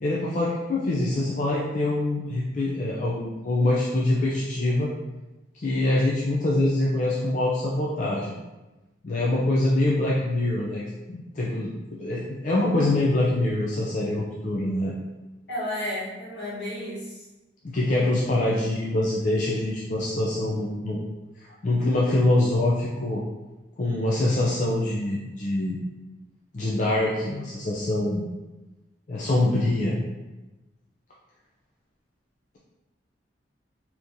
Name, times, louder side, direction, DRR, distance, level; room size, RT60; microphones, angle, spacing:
voice 1, 0.0-4.9 5.5-8.3 9.0-10.8 11.1-14.9 17.6-21.0 21.4-23.2 23.8-25.8 26.5-28.2 29.1-30.0, left 1 dB, 40° left, -5 dB, 0.4 m, -24 dB
voice 2, 15.5-17.2, left 1 dB, 70° left, -7 dB, 1.3 m, -32 dB
3.6 x 2.9 x 2.6 m, 1.1 s
head